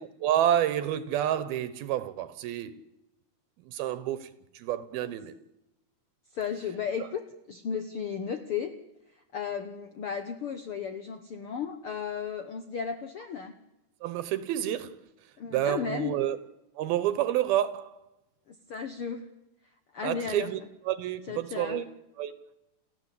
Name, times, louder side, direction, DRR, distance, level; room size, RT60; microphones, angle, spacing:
voice 1, 0.2-2.8 3.6-4.3 4.5-5.3 14.0-14.9 15.5-16.4 16.8-17.9 20.0-20.6 20.9-21.8 22.2-22.4, right 12 dB, 80° right, 2.8 m, -29 dB
voice 2, 6.3-7.2 7.5-8.7 9.1-13.5 15.4-16.2 18.5-19.3 19.9-20.5 21.3-21.9, left 7 dB, 75° left, 1.2 m, -34 dB
30.0 x 14.0 x 8.4 m
omnidirectional pair, 4.4 m